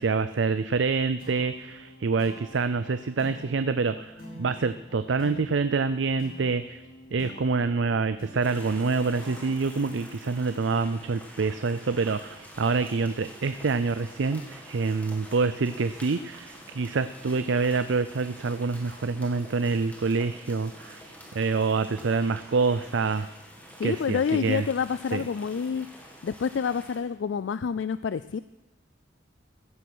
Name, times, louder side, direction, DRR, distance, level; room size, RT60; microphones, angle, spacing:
voice 1, 0.0-6.8 7.1-23.3 23.8-24.7 25.1-25.2, right 4 dB, 75° right, 12 dB, 0.5 m, -26 dB
sound 1, 1.2-12.0, equal, 45° left, 3.8 m, -48 dB
sound 2, 8.4-27.0, equal, 10° left, 2.1 m, -47 dB
voice 2, 23.8-25.9 26.2-28.4, left 6 dB, 75° left, 15 dB, 0.4 m, -28 dB
15.5 x 10.0 x 6.2 m, 1.0 s
head